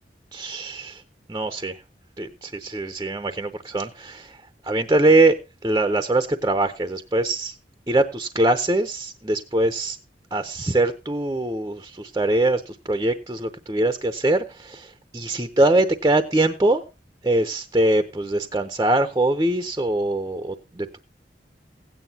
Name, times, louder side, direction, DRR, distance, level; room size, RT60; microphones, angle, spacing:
voice 1, 0.3-1.0 1.3-1.8 2.2-4.4 4.6-5.4 5.6-7.6 7.9-10.0 10.3-16.8 17.2-21.0, right 2 dB, 20° right, 0.7 m, -22 dB
16.0 x 9.2 x 2.8 m
head